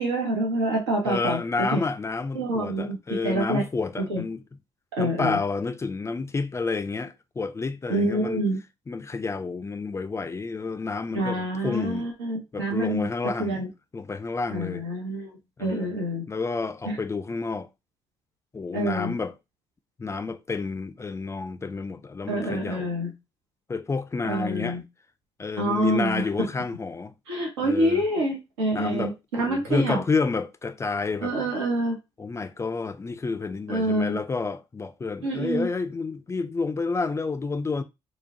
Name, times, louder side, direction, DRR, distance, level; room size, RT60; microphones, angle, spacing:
voice 1, 0.0-1.8 2.3-3.0 3.2-3.6 4.0-4.2 5.0-5.4 7.9-8.6 11.1-13.1 13.4-13.7 14.5-15.3 15.6-16.2 16.9-17.0 18.7-19.2 22.3-23.1 24.2-24.8 25.6-26.3 27.3-30.0 31.2-31.9 33.7-34.2 35.2-35.7, right 1 dB, 75° right, 0.8 m, -26 dB
voice 2, 1.0-4.4 5.0-8.4 8.9-12.1 12.5-13.6 13.9-14.8 15.6-15.9 16.3-17.7 18.5-19.3 20.0-22.9 23.7-24.8 25.4-27.1 27.6-28.0 28.7-31.5 32.2-37.8, left 4 dB, 20° left, 0.4 m, -30 dB
4.5 x 2.1 x 2.7 m
figure-of-eight pair, 45°, 14 cm